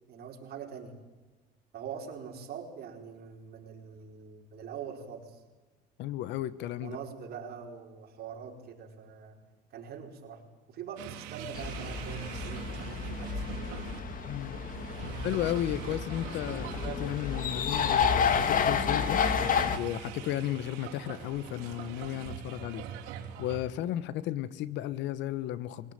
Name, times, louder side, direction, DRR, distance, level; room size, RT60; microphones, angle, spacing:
voice 1, 0.1-1.0 1.7-5.4 6.8-9.4 9.7-14.0 14.9-15.3, right 7 dB, 55° right, 2 dB, 4.7 m, -44 dB
voice 2, 6.0-7.0 14.3-14.6 15.0-19.2 19.7-22.8 23.4-25.9, left 13 dB, 70° left, 17 dB, 1.3 m, -34 dB
sound 1, 11.0-23.6, right 10 dB, 85° right, 3.0 m, -42 dB
sound 2, 11.5-19.8, left 7 dB, 45° left, 1.9 m, -30 dB
22.0 x 18.0 x 9.2 m, 1.2 s
cardioid pair, 110°, 19 cm